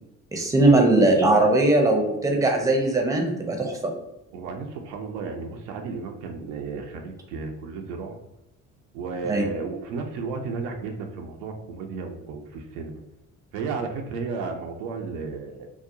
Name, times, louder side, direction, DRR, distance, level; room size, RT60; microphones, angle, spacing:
voice 1, 0.3-3.9 9.3-9.4, right 2 dB, 10° right, 2 dB, 0.6 m, -20 dB
voice 2, 4.3-8.2 8.9-13.0 13.5-15.7, right 4 dB, 80° right, 3 dB, 0.5 m, -33 dB
2.8 x 2.0 x 2.5 m, 0.88 s
hypercardioid pair, 50°, 41 cm